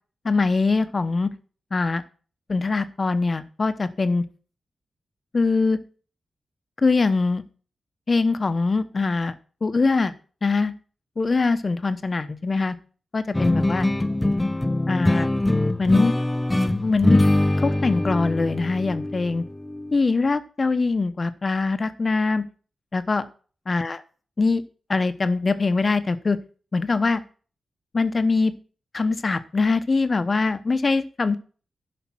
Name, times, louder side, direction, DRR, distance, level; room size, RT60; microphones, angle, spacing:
voice 1, 0.2-1.3 1.7-2.0 2.5-4.2 5.3-5.8 6.8-7.4 8.1-9.3 9.6-10.1 10.4-10.7 11.2-12.8 13.1-13.9 14.9-15.3 15.8-16.1 16.8-17.2 17.6-19.4 19.9-22.4 22.9-23.3 23.7-24.0 24.4-24.6 24.9-26.4 26.7-27.2 27.9-28.5 28.9-31.4, left 3 dB, 45° left, 11 dB, 1.0 m, -22 dB
sound 1, 13.3-20.0, left 1 dB, 15° left, 0.8 m, -23 dB
11.5 x 5.2 x 6.1 m, 0.40 s
cardioid pair, 60°, 0 cm